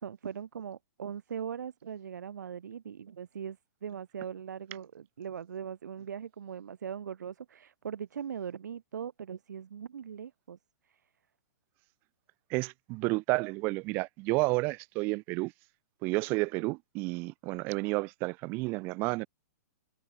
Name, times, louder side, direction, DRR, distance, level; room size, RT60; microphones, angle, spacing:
voice 1, 0.0-10.6 10.8-11.0, right 8 dB, 75° right, 4.8 m, -40 dB
voice 2, 12.5-15.5 16.0-19.3, right 25 dB, 20° right, 1.1 m, -31 dB
hypercardioid pair, 175°, 10 cm